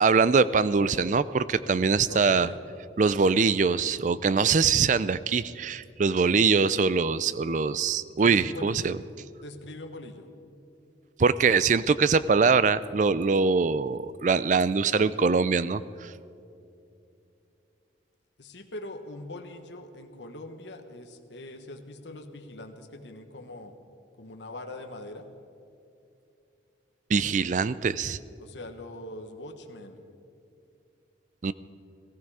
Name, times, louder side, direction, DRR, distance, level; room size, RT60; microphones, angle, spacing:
voice 1, 0.0-2.5 3.0-9.0 11.2-16.1 27.1-28.2 31.4-31.5, right 5 dB, 40° right, 16 dB, 0.4 m, -23 dB
voice 2, 2.1-2.6 8.2-9.0 9.4-10.3 18.4-23.7 24.2-25.3 28.4-30.0, left 1 dB, 70° left, 6 dB, 1.2 m, -42 dB
18.5 x 14.5 x 4.8 m, 2.6 s
head